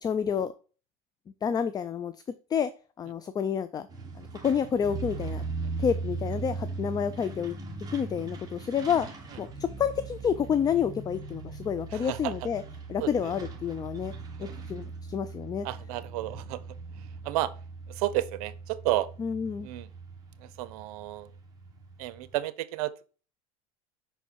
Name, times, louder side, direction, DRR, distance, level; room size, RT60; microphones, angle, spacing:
voice 1, 0.0-0.5 1.4-2.1 2.5-2.7 3.0-3.9 4.2-5.4 5.8-7.5 7.9-9.1 9.4-12.6 12.9-14.1 14.4-15.7 19.2-19.7, left 7 dB, 20° left, 0.3 m, -29 dB
Truck, 3.9-22.4, right 3 dB, 20° right, 1.6 m, -39 dB
voice 2, 11.9-12.4 13.0-13.3 14.4-14.5 15.6-16.6 17.0-17.5 17.9-19.1 19.6-19.9 20.4-21.3 22.0-23.1, right 15 dB, 80° right, 0.6 m, -32 dB
5.6 x 4.4 x 4.2 m
supercardioid pair, 120°, 19 cm